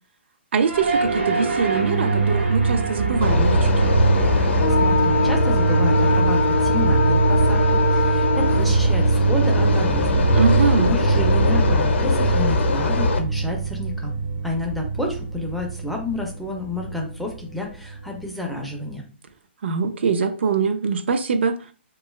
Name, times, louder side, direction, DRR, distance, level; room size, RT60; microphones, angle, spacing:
voice 1, 0.5-3.9 10.3-10.9 19.6-21.6, right 5 dB, 70° right, 0.4 m, -23 dB
sound 1, 0.6-18.9, right 4 dB, 90° right, 1.1 m, -22 dB
sound 2, 3.2-13.2, left 4 dB, 75° left, 0.5 m, -22 dB
voice 2, 4.8-10.3 10.6-14.2 14.4-19.0, left 2 dB, ahead, 0.3 m, -30 dB
2.8 x 2.3 x 3.0 m
hypercardioid pair, 165°, 6 cm